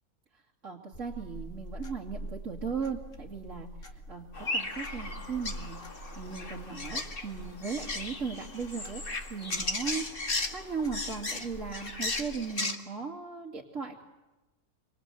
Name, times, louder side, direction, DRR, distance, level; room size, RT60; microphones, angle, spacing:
voice 1, 0.3-3.7 4.1-9.0 9.3-14.0, right 5 dB, 55° right, -3 dB, 2.8 m, -37 dB
sound 1, 0.9-12.4, equal, 55° left, 3.0 m, -45 dB
sound 2, 4.3-12.8, left 2 dB, 35° left, 2.1 m, -36 dB
27.0 x 26.5 x 8.4 m, 1.1 s
omnidirectional pair, 1.6 m